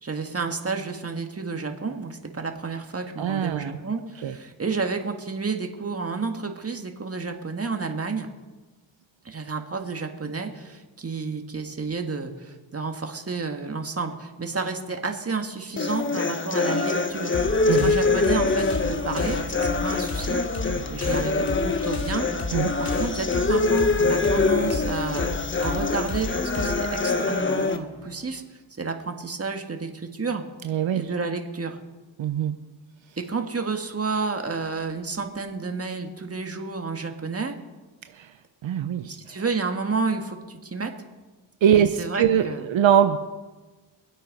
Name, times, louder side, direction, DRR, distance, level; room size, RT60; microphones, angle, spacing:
voice 1, 0.0-8.3 9.3-17.4 17.7-20.4 20.9-25.3 25.6-30.4 30.9-31.8 33.2-37.6 39.1-40.9 41.7-42.7, right 4 dB, 30° right, 4 dB, 1.8 m, -31 dB
voice 2, 3.2-3.8 4.2-4.3 17.7-18.0 22.5-22.7 30.6-31.1 32.2-32.6 38.2-38.3 38.6-39.4 41.6-43.2, right 9 dB, 70° right, 8 dB, 0.8 m, -22 dB
sound 1, 15.8-27.8, left 3 dB, 25° left, 1.0 m, -24 dB
sound 2, 17.3-28.4, left 2 dB, 45° left, 2.7 m, -34 dB
23.5 x 8.5 x 5.4 m, 1.2 s
cardioid pair, 75°, 48 cm